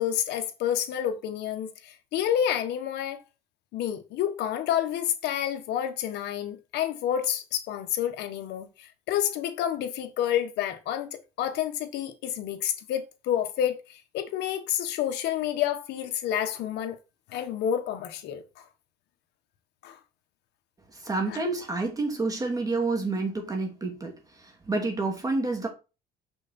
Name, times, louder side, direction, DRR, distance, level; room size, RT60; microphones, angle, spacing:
voice 1, 0.0-3.2 3.7-17.0 17.3-18.7 19.8-20.0 21.3-21.4, left 10 dB, 80° left, 1.4 m, -29 dB
voice 2, 21.0-24.1 24.7-25.7, right 3 dB, 20° right, 2.8 m, -28 dB
6.5 x 6.2 x 4.4 m
cardioid pair, 110°, 17 cm